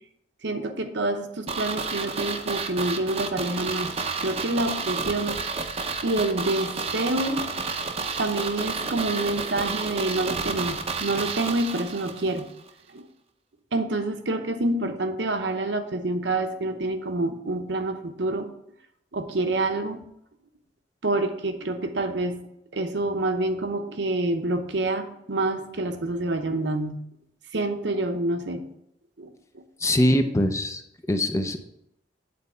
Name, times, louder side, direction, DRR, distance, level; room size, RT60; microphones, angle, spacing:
voice 1, 0.4-3.9 4.2-5.4 6.0-7.5 8.2-12.5 12.9-13.1 13.7-18.5 19.1-20.0 21.0-22.4 22.7-27.0 27.5-28.7 29.2-29.3, right 2 dB, 70° right, 6 dB, 0.8 m, -27 dB
sound 1, 1.5-12.4 12.7-12.8, right 4 dB, 35° right, 0.7 m, -31 dB
voice 2, 29.8-30.8 31.1-31.6, left 1 dB, 15° left, 7 dB, 0.5 m, -22 dB
8.7 x 4.1 x 5.5 m, 0.78 s
head